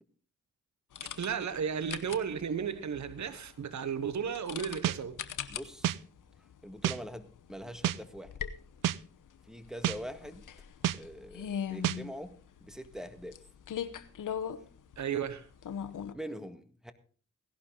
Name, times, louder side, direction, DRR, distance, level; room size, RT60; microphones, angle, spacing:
sound 1, 0.9-16.1, left 8 dB, 80° left, 1.0 m, -42 dB
voice 1, 1.2-5.2 15.0-15.5, right 7 dB, 65° right, 1.1 m, -34 dB
sound 2, 4.8-5.0 5.8-6.0 6.8-7.0 7.8-8.0 8.8-9.0 9.8-10.0 10.8-11.0 11.8-12.0, right 12 dB, 85° right, 0.5 m, -28 dB
voice 2, 5.5-6.0 6.6-8.4 9.5-10.4 10.9-13.4 16.1-16.9, equal, ahead, 1.8 m, -43 dB
17.0 x 11.5 x 3.9 m
cardioid pair, 60°, 31 cm